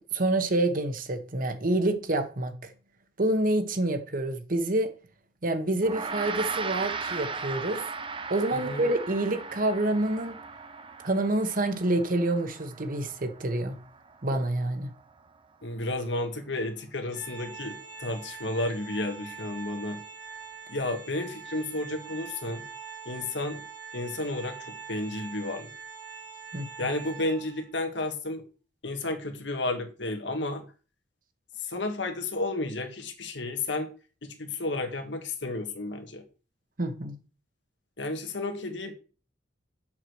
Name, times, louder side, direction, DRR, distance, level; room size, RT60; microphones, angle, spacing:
voice 1, 0.1-2.5 3.2-4.9 5.4-7.8 8.3-10.4 11.0-13.8 14.2-14.9 26.5-26.9 36.8-37.1, right 1 dB, 50° right, 1.2 m, -27 dB
Gong, 5.8-15.4, right 4 dB, 30° right, 0.7 m, -38 dB
voice 2, 8.5-8.8 15.6-20.0 20.7-22.6 23.0-23.6 23.9-25.7 26.8-28.4 28.8-30.6 31.6-33.9 34.2-36.2 38.0-38.9, left 2 dB, 75° left, 1.7 m, -32 dB
Organ, 17.1-27.8, right 5 dB, 65° right, 3.2 m, -44 dB
7.4 x 4.9 x 6.3 m
head